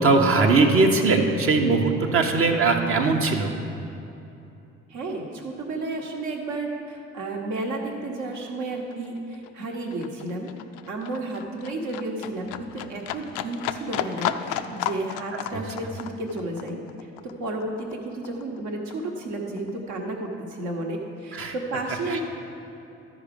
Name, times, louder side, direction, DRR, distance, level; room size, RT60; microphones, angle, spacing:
voice 1, 0.0-3.5 15.5-15.6 21.3-21.5 22.1-22.2, right 3 dB, 45° right, 3 dB, 1.0 m, -20 dB
voice 2, 4.9-10.5 10.9-16.8 17.2-22.2, right 2 dB, 60° right, 1 dB, 1.3 m, -32 dB
Livestock farm animals working animals, 7.2-7.3 7.6-18.6 18.9-19.9 20.2-20.3, left 11 dB, 65° left, 0.5 m, -34 dB
12.0 x 4.9 x 5.2 m, 2.8 s
hypercardioid pair, 50°, 32 cm